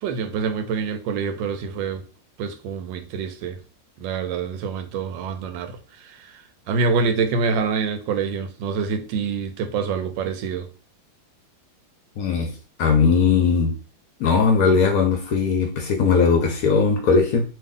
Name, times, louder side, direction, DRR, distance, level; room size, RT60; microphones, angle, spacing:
voice 1, 0.0-2.0 2.4-3.6 4.0-10.7, right 5 dB, 90° right, 1.3 m, -26 dB
voice 2, 12.2-12.5 12.8-13.7 14.2-17.4, left 5 dB, 70° left, 0.9 m, -19 dB
3.1 x 2.6 x 3.5 m
omnidirectional pair, 2.0 m